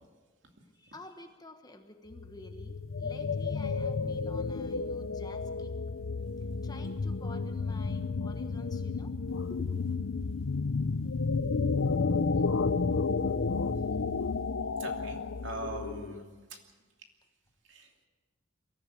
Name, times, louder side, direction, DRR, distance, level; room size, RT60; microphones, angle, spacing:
voice 1, 0.7-5.7 6.6-9.1 9.5-9.7, left 1 dB, 20° left, 6 dB, 1.3 m, -50 dB
sound 1, 2.1-16.3, left 4 dB, 80° left, 0.7 m, -31 dB
voice 2, 14.8-16.6 17.7-17.9, right 2 dB, 65° right, 2 dB, 2.9 m, -42 dB
22.5 x 14.0 x 8.4 m, 1.3 s
head